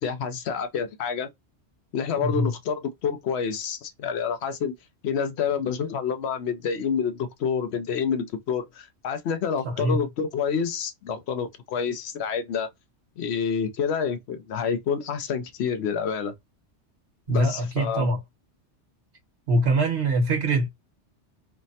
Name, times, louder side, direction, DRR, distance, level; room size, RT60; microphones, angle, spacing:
voice 1, 0.0-1.3 1.9-4.7 5.0-12.7 13.2-16.3 17.3-18.1, left 6 dB, 70° left, 0.9 m, -28 dB
voice 2, 2.2-2.5 9.6-10.0 17.3-18.2 19.5-20.7, right 1 dB, 70° right, 1.3 m, -23 dB
3.3 x 2.1 x 2.6 m
omnidirectional pair, 1.2 m